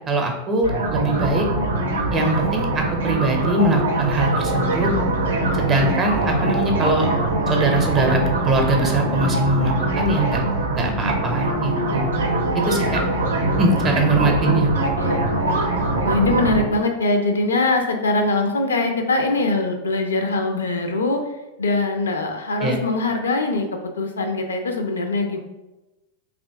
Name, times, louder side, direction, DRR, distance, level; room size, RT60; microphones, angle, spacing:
voice 1, 0.1-1.5 2.1-4.9 5.5-7.1 7.5-10.4 10.7-12.1 12.5-13.0 13.6-14.7 22.6-22.8, right 2 dB, 25° right, 3 dB, 0.6 m, -22 dB
sound 1, 0.6-16.6, right 2 dB, 65° right, 0.5 m, -22 dB
voice 2, 14.9-15.5 16.0-21.2 21.6-25.4, left 2 dB, 70° left, 4 dB, 0.4 m, -22 dB
2.7 x 2.5 x 3.3 m, 1.0 s
figure-of-eight pair, 90°, 0 cm